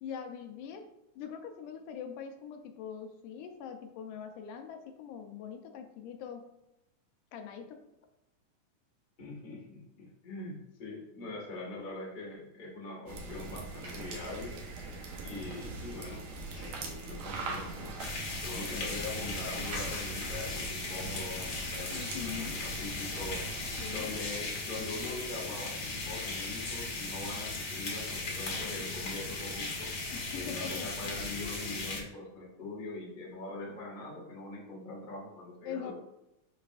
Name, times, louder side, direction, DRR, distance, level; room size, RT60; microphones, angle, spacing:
voice 1, 0.0-6.5 7.3-7.8 21.9-22.6 23.8-24.1 30.1-31.7 35.6-35.9, left 7 dB, 80° left, 5 dB, 2.1 m, -43 dB
voice 2, 9.2-14.6 15.2-16.3 16.5-17.9 18.4-23.5 23.9-30.0 30.3-35.9, left 2 dB, 35° left, -4 dB, 0.7 m, -42 dB
sound 1, 13.1-24.0, right 3 dB, 70° right, 2.0 m, -42 dB
sound 2, 13.4-21.0, right 1 dB, 85° right, 4.0 m, -50 dB
sound 3, 18.0-32.0, left 3 dB, 60° left, 1.1 m, -37 dB
10.0 x 4.2 x 2.4 m, 0.90 s
omnidirectional pair, 3.8 m